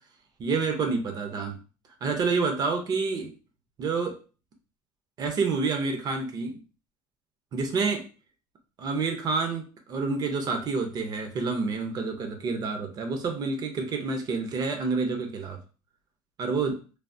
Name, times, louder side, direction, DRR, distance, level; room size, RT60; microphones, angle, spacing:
voice 1, 0.4-1.6 2.0-3.3 3.8-4.2 5.2-6.6 7.5-8.0 8.8-15.6 16.4-16.8, right 4 dB, 35° right, 5 dB, 0.6 m, -28 dB
3.3 x 2.0 x 2.6 m, 0.36 s
cardioid pair, 140°, 11 cm